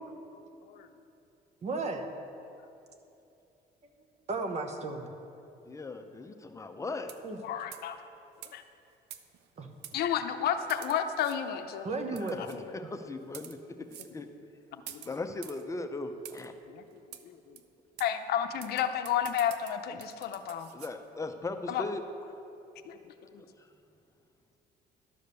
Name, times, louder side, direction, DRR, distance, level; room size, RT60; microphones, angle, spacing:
voice 1, 1.6-2.1 4.3-5.1 7.2-7.4 9.6-9.7 11.8-12.4, right 3 dB, 40° right, 5 dB, 0.9 m, -34 dB
voice 2, 5.6-7.1 12.2-13.6 14.1-14.3 15.1-16.5 20.7-22.0, left 3 dB, 20° left, 6 dB, 0.6 m, -38 dB
sound 1, 7.1-7.4 7.7-7.9 8.4-8.5 9.1-9.5 9.8-10.0 10.7-11.4 12.2-12.6 13.2-13.6 13.9-14.1 14.9-15.6 16.2-16.5 17.1-17.2 17.6-17.7 18.0-18.1 18.6-20.9, right 10 dB, 85° right, 0.6 m, -47 dB
voice 3, 7.4-8.0 8.5-8.6 9.9-11.9 12.4-12.7 14.7-15.1 16.7-16.8 17.2-17.6 18.0-20.7 21.7-21.8 22.9-23.4, left 9 dB, 70° left, 7 dB, 0.6 m, -32 dB
11.5 x 5.0 x 6.8 m, 2.8 s
cardioid pair, 110°, 17 cm